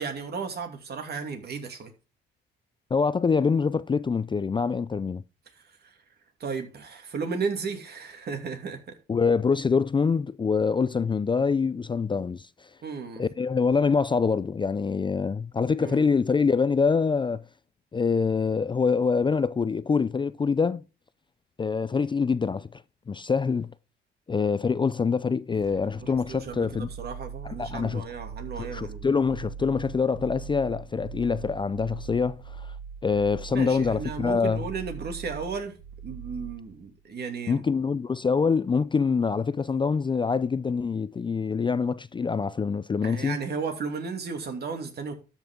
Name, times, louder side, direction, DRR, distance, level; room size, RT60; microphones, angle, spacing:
voice 1, 0.0-1.9 5.8-5.9 6.4-9.0 12.8-13.2 15.8-16.0 26.0-26.7 27.0-29.1 33.5-35.8 36.0-37.6 43.0-45.1, right 5 dB, 55° right, 2.5 m, -34 dB
voice 2, 2.9-5.2 9.1-12.5 13.2-17.4 17.9-20.8 21.6-22.8 23.1-23.7 24.3-26.9 27.4-28.1 28.6-32.7 33.0-34.6 37.5-43.4, left 5 dB, 25° left, 0.4 m, -25 dB
sound 1, 25.5-37.0, right 6 dB, 85° right, 3.8 m, -41 dB
12.5 x 6.0 x 3.7 m
cardioid pair, 90°, 20 cm